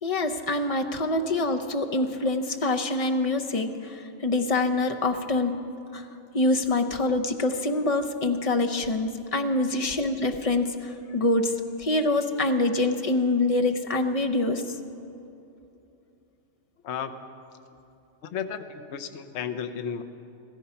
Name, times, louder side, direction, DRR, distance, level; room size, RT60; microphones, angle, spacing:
voice 1, 0.0-5.6 5.9-6.1 6.3-14.8, left 2 dB, 35° left, 5 dB, 0.6 m, -25 dB
voice 2, 16.8-17.3 18.2-20.0, left 7 dB, 60° left, 9 dB, 1.0 m, -33 dB
15.5 x 14.0 x 5.7 m, 2.8 s
omnidirectional pair, 1.4 m